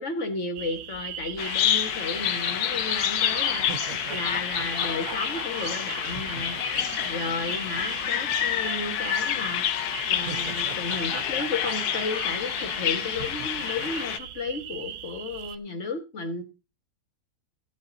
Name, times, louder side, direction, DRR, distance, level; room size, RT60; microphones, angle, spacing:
voice 1, 0.0-6.6 7.1-9.6 10.1-16.4, left 3 dB, 50° left, 7 dB, 1.8 m, -33 dB
sound 1, 0.6-15.6, right 10 dB, 90° right, 1.3 m, -39 dB
Bird vocalization bird call bird song, 1.4-14.2, left 10 dB, 85° left, 1.2 m, -28 dB
sound 2, 2.7-2.8 3.3-8.4 8.6-8.7 9.9-12.8 13.1-14.0, right 9 dB, 70° right, 1.1 m, -42 dB
14.0 x 8.2 x 3.8 m, 0.29 s
omnidirectional pair, 1.6 m